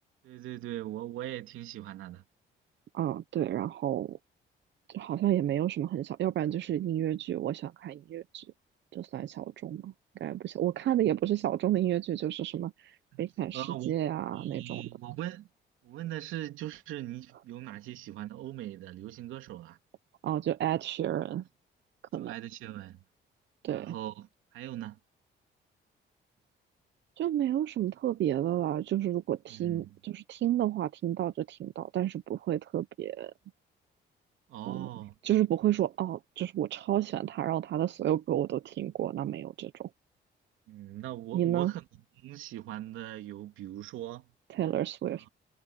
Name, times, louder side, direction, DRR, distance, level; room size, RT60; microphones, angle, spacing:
voice 1, 0.2-2.2 13.1-13.2 13.5-14.0 14.3-15.5 15.8-19.8 22.2-23.0 23.7-25.0 29.5-29.9 34.5-35.1 40.7-41.8 42.2-44.3, right 13 dB, 90° right, 3.1 m, -40 dB
voice 2, 2.9-4.2 4.9-8.5 8.9-14.8 20.2-21.5 22.1-22.3 23.6-23.9 27.2-33.3 34.7-34.9 35.2-39.9 41.3-41.7 44.5-45.3, right 12 dB, 65° right, 0.8 m, -31 dB
cardioid pair, 90°, 20 cm